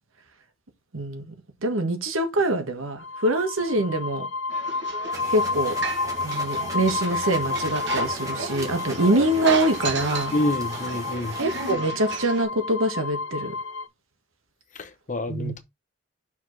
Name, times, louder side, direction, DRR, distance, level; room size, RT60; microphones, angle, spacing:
voice 1, 0.9-1.3 1.6-4.3 5.3-5.8 6.2-10.3 11.4-13.5 15.3-15.5, right 1 dB, 80° right, 1.6 m, -24 dB
sound 1, 3.0-13.8, left 3 dB, 70° left, 0.6 m, -31 dB
sound 2, 4.5-12.4, right 3 dB, 55° right, 1.4 m, -34 dB
sound 3, 5.1-11.7, right 1 dB, 15° right, 1.6 m, -40 dB
voice 2, 10.3-11.4 14.7-15.6, left 1 dB, 35° left, 0.8 m, -28 dB
5.8 x 4.7 x 4.1 m
head